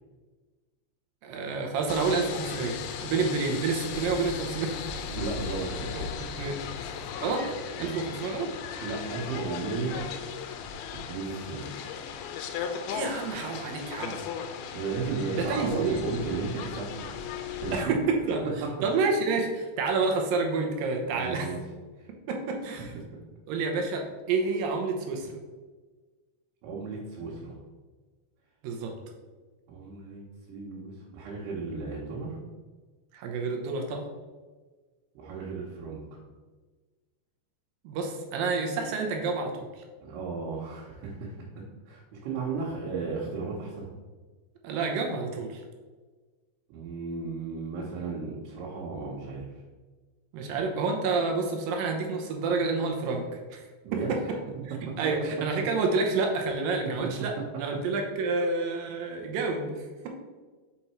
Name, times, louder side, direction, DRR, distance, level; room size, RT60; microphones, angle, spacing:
voice 1, 1.2-4.7 5.9-6.1 6.4-6.6 7.2-7.5 7.8-8.5 9.9-10.0 12.9-14.2 15.4-16.0 17.7-18.5 18.8-21.5 22.3-22.9 23.5-24.0 24.3-25.3 28.6-28.9 33.1-34.0 37.8-39.7 44.6-45.6 50.3-53.2 53.5-53.7 55.0-57.3 57.6-60.1, right 4 dB, 75° right, 2 dB, 2.3 m, -29 dB
sound 1, 1.9-17.9, left 7 dB, 85° left, 2.5 m, -37 dB
voice 2, 5.1-6.3 7.8-8.0 8.8-10.0 11.1-11.7 14.7-17.1 17.6-18.0 21.1-21.6 22.0-22.1 22.8-22.9 26.6-27.6 29.7-30.2 30.5-32.4 35.2-36.0 40.0-41.3 41.9-43.9 46.7-49.4 53.8-54.5, right 4 dB, 90° right, -5 dB, 3.1 m, -34 dB
5.8 x 5.2 x 4.3 m, 1.4 s
omnidirectional pair, 4.5 m